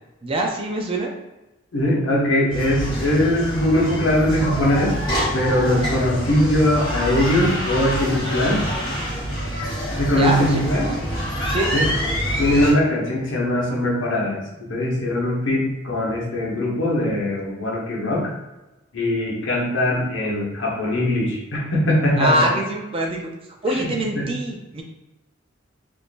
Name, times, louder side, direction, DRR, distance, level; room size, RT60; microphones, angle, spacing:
voice 1, 0.2-1.1 10.1-11.0 11.5-11.7 22.2-23.3 23.6-24.8, right 1 dB, 30° right, 1 dB, 0.4 m, -24 dB
voice 2, 1.7-5.0 5.3-8.7 10.0-10.9 11.7-11.9 12.4-14.4 14.7-18.3 18.9-22.5 23.7-24.3, left 1 dB, 70° left, -3 dB, 1.0 m, -21 dB
sound 1, 2.5-12.7, equal, 20° left, 1.2 m, -26 dB
3.6 x 2.5 x 2.5 m, 1.0 s
head